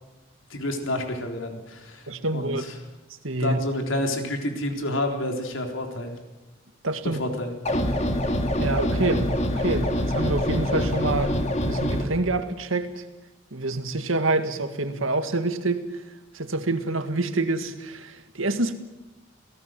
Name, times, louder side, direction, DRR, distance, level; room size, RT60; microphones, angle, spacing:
voice 1, 0.5-2.0 2.3-2.6 3.4-6.1 7.2-7.5, left 1 dB, 80° left, 3.8 m, -29 dB
voice 2, 2.1-2.7 3.2-3.6 6.8-7.2 8.6-11.4 11.7-13.0 13.5-16.0 16.3-18.7, right 2 dB, 90° right, 2.0 m, -27 dB
sound 1, 7.7-12.0, equal, 35° left, 2.4 m, -25 dB
28.0 x 18.0 x 7.6 m
head